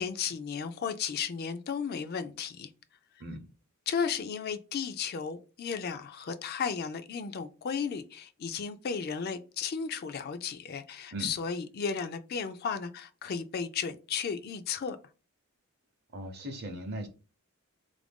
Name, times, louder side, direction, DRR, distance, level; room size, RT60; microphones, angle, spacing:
voice 1, 0.0-2.7 3.9-15.0, left 6 dB, 45° left, 0.3 m, -34 dB
voice 2, 16.1-17.1, right 1 dB, 50° right, 0.7 m, -38 dB
3.4 x 2.5 x 3.5 m
head